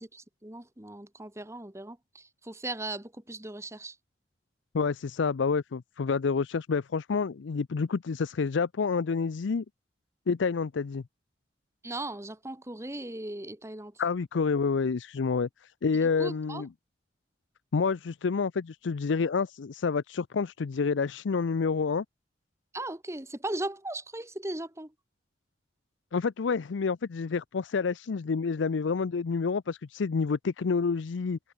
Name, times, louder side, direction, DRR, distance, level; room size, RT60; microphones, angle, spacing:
voice 1, 0.0-4.0 11.8-13.9 16.2-16.6 22.7-24.9, right 2 dB, 15° right, 1.8 m, -38 dB
voice 2, 4.7-9.6 10.3-11.0 14.0-16.7 17.7-22.0 26.1-31.4, left 5 dB, 80° left, 0.5 m, -28 dB
head